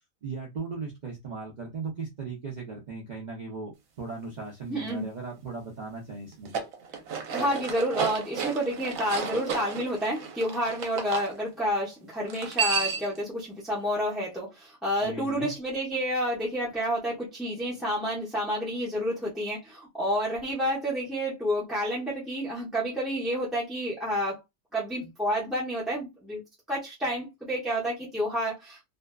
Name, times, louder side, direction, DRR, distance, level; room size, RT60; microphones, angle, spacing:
voice 1, 0.2-6.5 15.0-15.5, right 4 dB, 60° right, 0.4 m, -37 dB
voice 2, 4.7-5.1 6.9-24.4 24.7-26.4 26.7-28.9, equal, ahead, 0.6 m, -29 dB
sound 1, 6.3-11.3 12.3-13.2, right 6 dB, 75° right, 1.1 m, -32 dB
2.5 x 2.3 x 2.2 m
omnidirectional pair, 1.4 m